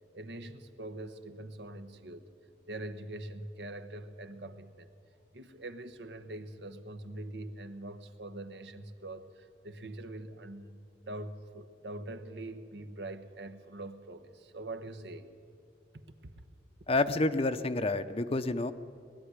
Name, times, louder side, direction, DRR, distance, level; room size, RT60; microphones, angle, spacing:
voice 1, 0.1-2.3 2.7-4.9 5.3-10.8 11.0-15.3 16.2-16.4, right 1 dB, 80° right, 9 dB, 1.1 m, -43 dB
voice 2, 16.9-18.7, left 2 dB, 35° left, 11 dB, 0.7 m, -29 dB
20.5 x 13.0 x 9.7 m, 2.6 s
head